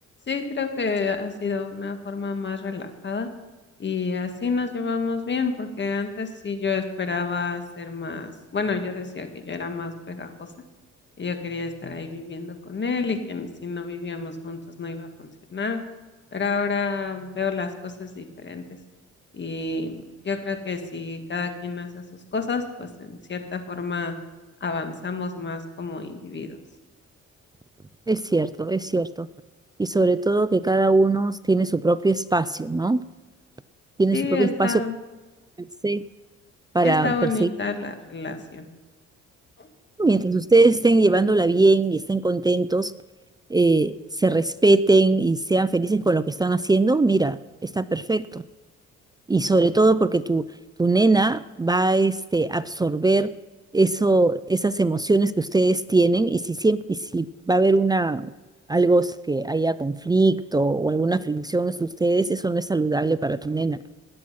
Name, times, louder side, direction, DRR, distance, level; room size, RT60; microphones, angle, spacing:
voice 1, 0.3-3.3 3.8-10.5 11.2-15.8 16.3-18.8 19.3-22.0 22.3-24.1 24.6-26.6 34.1-34.9 36.8-38.7 39.6-39.7, left 4 dB, 35° left, 7 dB, 1.9 m, -29 dB
voice 2, 28.1-29.3 29.8-33.0 34.0-34.7 35.6-36.0 36.7-37.5 40.0-42.9 43.5-47.4 47.8-48.4 49.3-50.5 50.8-53.3 53.7-58.3 58.7-63.8, right 2 dB, 15° right, 15 dB, 0.4 m, -21 dB
20.0 x 7.6 x 5.8 m, 1.2 s
cardioid pair, 90°, 30 cm